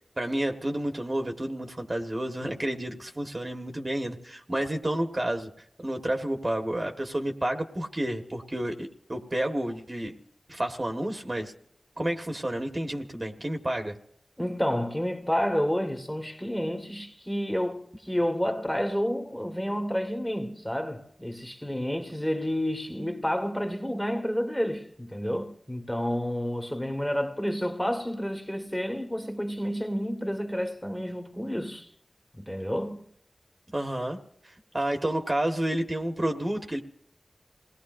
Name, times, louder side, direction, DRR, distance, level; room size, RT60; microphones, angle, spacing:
voice 1, 0.2-5.5 5.8-10.2 10.5-11.5 12.0-14.0 33.7-34.2 34.7-36.8, right 1 dB, 35° right, 1.4 m, -30 dB
voice 2, 14.4-31.9 32.3-33.0, equal, 10° left, 1.6 m, -30 dB
28.5 x 19.0 x 2.6 m
wide cardioid pair, 80°, 0 cm